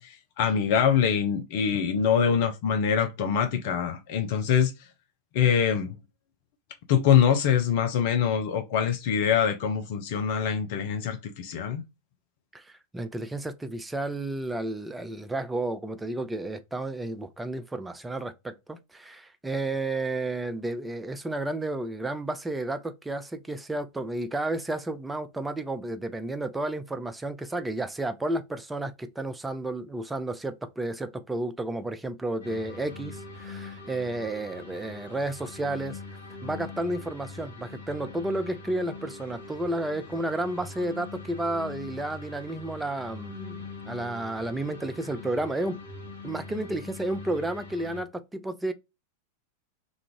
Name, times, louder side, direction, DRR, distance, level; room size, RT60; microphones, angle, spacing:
voice 1, 0.0-4.7 5.3-6.0 6.9-11.8, left 8 dB, 50° left, 0.5 m, -24 dB
voice 2, 12.5-36.0 36.4-45.8 46.2-48.7, right 2 dB, 10° right, 0.3 m, -32 dB
sound 1, 32.4-48.0, left 3 dB, 75° left, 1.0 m, -42 dB
2.5 x 2.2 x 3.0 m
figure-of-eight pair, 90°, 0 cm